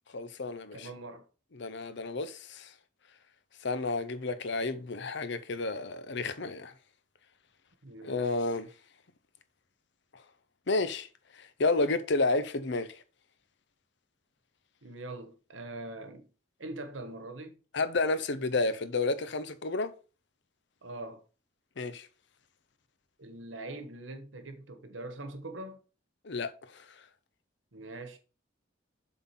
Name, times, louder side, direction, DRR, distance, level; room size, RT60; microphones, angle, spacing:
voice 1, 0.1-0.9 1.5-2.7 3.6-6.7 8.0-8.7 10.7-11.1 11.4-12.9 17.7-19.9 21.8-22.1 26.2-26.8, left 3 dB, 65° left, 0.8 m, -31 dB
voice 2, 0.7-1.2 7.8-8.4 14.8-16.3 16.6-17.6 20.8-21.2 23.2-25.8 27.7-28.2, right 2 dB, 80° right, 1.3 m, -43 dB
7.6 x 4.0 x 5.7 m
head